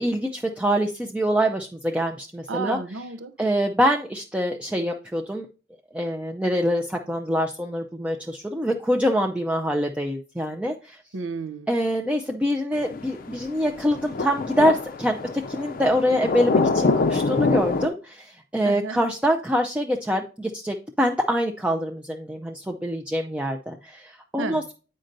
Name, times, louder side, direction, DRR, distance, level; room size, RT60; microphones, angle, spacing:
voice 1, 0.0-2.8 3.4-5.5 5.9-11.0 11.7-24.7, equal, 5° right, 2 dB, 0.4 m, -25 dB
voice 2, 2.5-3.3 11.1-11.7 18.6-19.0 24.4-24.7, right 4 dB, 80° right, 10 dB, 0.6 m, -32 dB
sound 1, 12.8-17.9, left 3 dB, 45° left, 0.5 m, -25 dB
8.8 x 5.2 x 2.6 m, 0.34 s
head